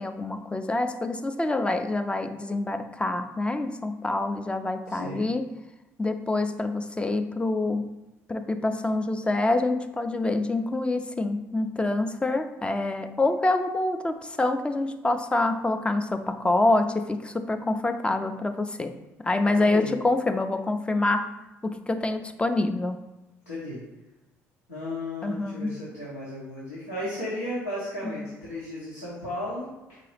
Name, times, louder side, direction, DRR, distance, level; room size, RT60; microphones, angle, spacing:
voice 1, 0.0-5.5 6.0-7.9 8.3-18.9 19.2-21.3 21.6-23.0 25.2-25.8 28.0-28.3, left 2 dB, 15° left, 8 dB, 0.4 m, -26 dB
voice 2, 4.9-5.2 19.5-19.9 23.5-23.8 24.7-30.0, left 1 dB, 90° left, -9 dB, 1.0 m, -35 dB
4.1 x 3.7 x 3.2 m, 1.0 s
hypercardioid pair, 55°, 8 cm